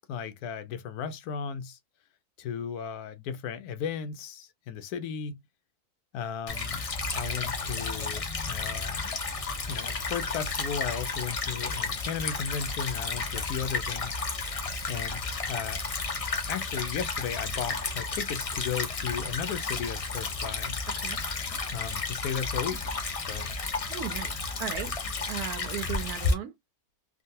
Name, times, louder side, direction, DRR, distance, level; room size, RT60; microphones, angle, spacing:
voice 1, 0.1-1.8 2.4-5.4 6.1-6.8 7.1-9.1 9.7-14.2 14.9-15.2 15.5-15.8 16.5-20.8 21.5-23.5, left 7 dB, 85° left, 1.2 m, -35 dB
Stream / Trickle dribble, 6.5-26.3, left 4 dB, 60° left, 0.3 m, -32 dB
voice 2, 23.9-24.9 25.3-26.5, right 9 dB, 90° right, 1.2 m, -36 dB
3.7 x 2.2 x 2.6 m
omnidirectional pair, 1.6 m